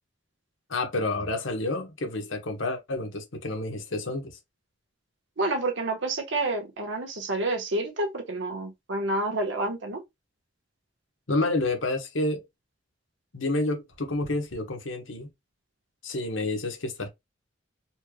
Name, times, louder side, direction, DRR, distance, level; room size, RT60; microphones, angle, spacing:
voice 1, 0.7-4.4 11.3-12.4 13.3-15.3 16.0-17.1, left 2 dB, 75° left, 1.2 m, -29 dB
voice 2, 5.4-10.0, right 2 dB, 70° right, 1.2 m, -29 dB
4.2 x 3.2 x 2.2 m
head